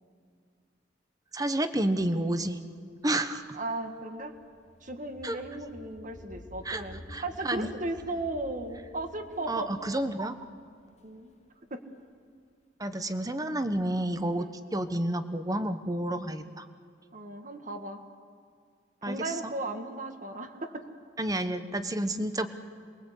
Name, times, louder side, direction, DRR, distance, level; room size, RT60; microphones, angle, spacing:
voice 1, 1.3-2.6 3.0-3.4 5.2-5.4 6.6-6.8 7.1-7.7 9.5-10.4 12.8-14.5 14.7-16.7 19.0-19.5 21.2-22.5, right 1 dB, 20° right, 9 dB, 1.1 m, -30 dB
sound 1, 3.0-12.0, left 1 dB, 40° left, 1.1 m, -51 dB
voice 2, 3.5-4.4 4.8-9.7 11.0-11.4 11.7-11.8 14.4-14.6 17.1-18.0 19.1-20.9, right 2 dB, 45° right, 6 dB, 1.8 m, -36 dB
27.5 x 21.5 x 8.3 m, 2.3 s
head